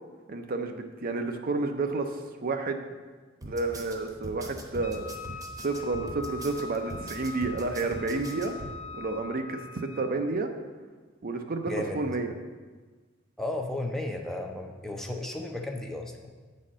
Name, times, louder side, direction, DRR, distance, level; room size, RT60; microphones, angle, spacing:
voice 1, 0.3-2.8 3.4-5.1 5.6-8.5 8.9-10.5 11.2-12.3, right 3 dB, 50° right, 6 dB, 0.6 m, -30 dB
sound 1, 3.4-8.7, right 1 dB, 20° right, 0.9 m, -42 dB
Wind instrument woodwind instrument, 4.8-10.2, left 4 dB, 85° left, 0.8 m, -43 dB
voice 2, 11.7-12.0 13.4-16.3, left 2 dB, ahead, 2 dB, 0.6 m, -34 dB
8.3 x 4.2 x 6.2 m, 1.4 s
head